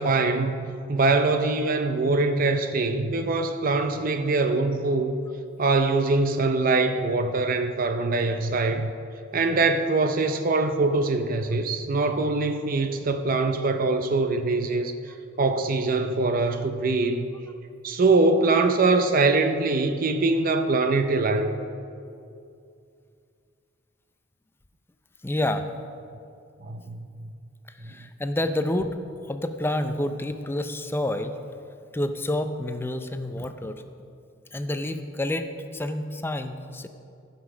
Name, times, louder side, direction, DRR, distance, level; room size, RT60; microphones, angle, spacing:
voice 1, 0.0-5.2 5.6-8.9 9.3-14.9 15.4-17.3 17.8-21.6 26.6-27.2, right 3 dB, 45° right, 7 dB, 0.5 m, -23 dB
voice 2, 25.2-25.7 27.8-29.0 29.3-31.4 31.9-33.8 34.5-36.9, left 1 dB, 10° left, 8 dB, 0.5 m, -28 dB
14.5 x 5.7 x 6.1 m, 2.5 s
head